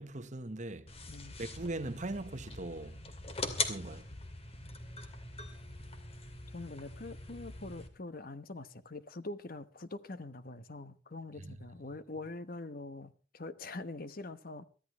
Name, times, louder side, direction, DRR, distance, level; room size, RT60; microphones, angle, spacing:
voice 1, 0.0-0.9 1.4-3.0 3.6-4.0 11.4-11.7, right 2 dB, 40° right, 1.1 m, -40 dB
sound 1, 0.9-7.9, left 3 dB, 35° left, 2.4 m, -42 dB
voice 2, 1.1-1.4 6.5-14.6, left 2 dB, 50° left, 1.1 m, -44 dB
23.5 x 14.5 x 3.1 m
head